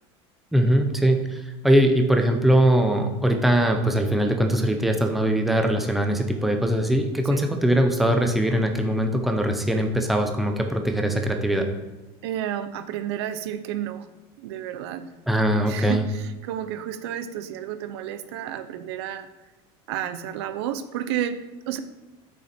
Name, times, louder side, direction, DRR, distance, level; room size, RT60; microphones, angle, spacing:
voice 1, 0.5-11.7 15.3-16.1, right 1 dB, ahead, 4 dB, 0.6 m, -21 dB
voice 2, 12.2-14.1 14.4-15.1 15.6-19.3 19.9-21.4 21.7-21.8, right 10 dB, 80° right, 11 dB, 0.8 m, -31 dB
8.7 x 6.8 x 4.4 m, 1.1 s
cardioid pair, 180°, 13 cm